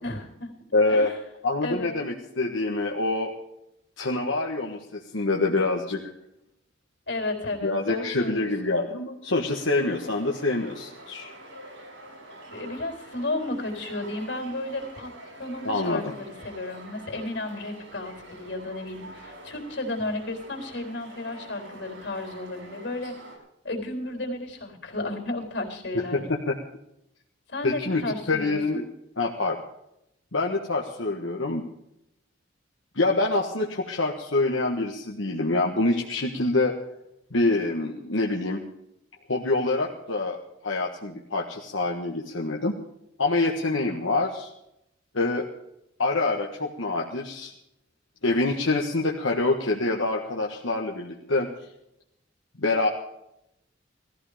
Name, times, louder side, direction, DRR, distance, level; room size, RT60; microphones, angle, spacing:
voice 1, 0.0-0.5 0.9-1.2 1.6-2.0 7.1-8.5 12.5-15.1 15.4-23.1 23.6-26.2 27.5-28.8, left 2 dB, 65° left, 2 dB, 3.9 m, -33 dB
voice 2, 0.7-1.1 1.4-3.3 4.0-6.0 7.6-11.3 15.6-16.1 25.9-26.5 27.6-28.8 29.2-29.6 30.3-31.6 32.9-36.8 37.3-38.6 39.3-42.8 43.2-44.5 45.1-45.5 46.0-47.5 48.2-51.5 52.6-52.9, left 2 dB, 85° left, -1 dB, 1.6 m, -26 dB
sound 1, 9.5-23.4, right 1 dB, 70° right, 6.2 m, -46 dB
17.5 x 14.5 x 5.1 m, 0.81 s
head